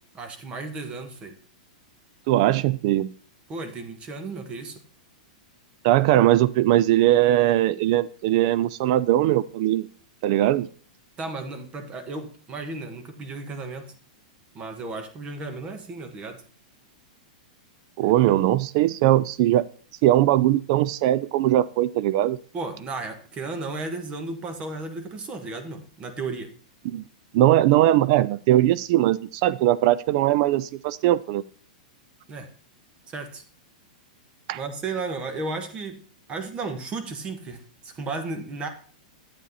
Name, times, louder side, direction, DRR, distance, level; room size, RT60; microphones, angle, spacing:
voice 1, 0.1-1.3 3.5-4.8 11.2-13.9 14.5-16.4 22.5-26.5 32.3-32.5 33.1-33.4 34.5-36.0 36.3-38.7, right 3 dB, 25° right, 8 dB, 1.3 m, -34 dB
voice 2, 2.3-3.1 5.8-9.9 10.2-10.7 18.0-19.7 20.0-22.4 26.9-27.0 27.3-31.4 34.5-34.6, right 14 dB, 50° right, 17 dB, 0.3 m, -20 dB
8.4 x 7.3 x 4.1 m, 0.43 s
hypercardioid pair, 130°, 4 cm